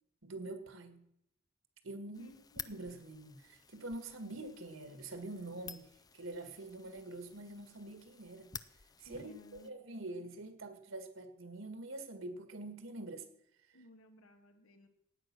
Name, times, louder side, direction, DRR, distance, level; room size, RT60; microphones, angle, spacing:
voice 1, 0.2-1.0 1.8-2.3 2.7-5.8 6.1-8.5 9.0-13.3, right 2 dB, 65° right, 8 dB, 1.9 m, -45 dB
sound 1, 2.1-9.7, left 7 dB, 20° left, 0.4 m, -53 dB
voice 2, 2.2-2.7 9.1-9.7 13.7-14.9, left 1 dB, 85° left, 5 dB, 2.2 m, -58 dB
16.0 x 9.5 x 6.1 m, 0.80 s
head